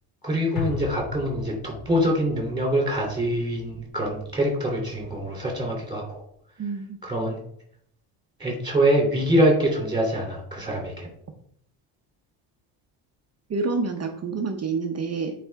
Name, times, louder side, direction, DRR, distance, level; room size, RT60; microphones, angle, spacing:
voice 1, 0.2-6.2 7.0-7.4 8.4-11.1, equal, 10° right, -1 dB, 3.0 m, -24 dB
sound 1, 0.6-5.0 5.3-5.4, left 4 dB, 50° left, 2.0 m, -38 dB
voice 2, 6.6-7.0 13.5-15.3, right 4 dB, 30° right, 4 dB, 0.7 m, -28 dB
9.1 x 4.2 x 3.5 m, 0.69 s
cardioid pair, 135°, 50 cm